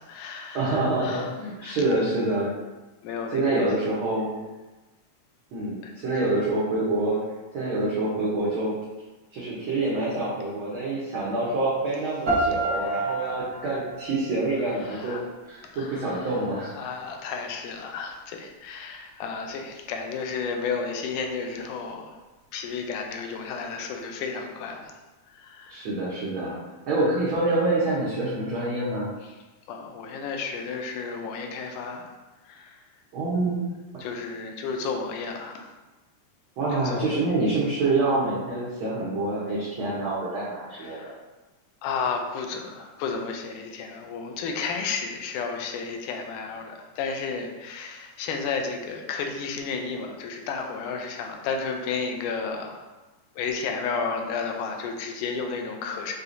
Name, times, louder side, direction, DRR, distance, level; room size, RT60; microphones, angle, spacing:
voice 1, 0.0-1.3 1.6-1.8 3.0-3.7 5.8-6.4 12.7-13.3 14.7-15.2 15.6-16.4 16.7-22.2 22.5-25.0 25.3-25.8 29.2-29.4 29.7-32.1 32.4-32.8 34.0-35.7 36.7-37.1 40.7-41.2 41.8-52.9 53.4-56.1, left 5 dB, 85° left, 3 dB, 2.1 m, -33 dB
voice 2, 0.5-2.5 3.3-4.4 5.5-7.2 7.5-8.7 9.3-15.2 15.5-16.7 25.7-26.6 26.9-29.1 33.1-33.6 36.6-41.1, right 2 dB, 85° right, -8 dB, 1.1 m, -26 dB
sound 1, 12.3-15.3, right 2 dB, 45° right, 1.6 m, -29 dB
6.6 x 2.8 x 2.6 m, 1.2 s
omnidirectional pair, 3.6 m